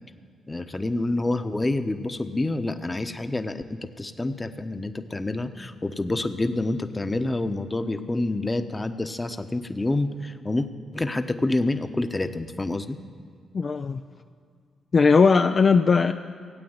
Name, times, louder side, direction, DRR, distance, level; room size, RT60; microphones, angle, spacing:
voice 1, 0.5-10.7 10.9-13.0, left 2 dB, 20° left, 8 dB, 1.1 m, -27 dB
voice 2, 13.5-14.0 14.9-16.1, left 5 dB, 50° left, 6 dB, 0.5 m, -18 dB
17.0 x 8.6 x 8.0 m, 2.2 s
supercardioid pair, 50°, 0 cm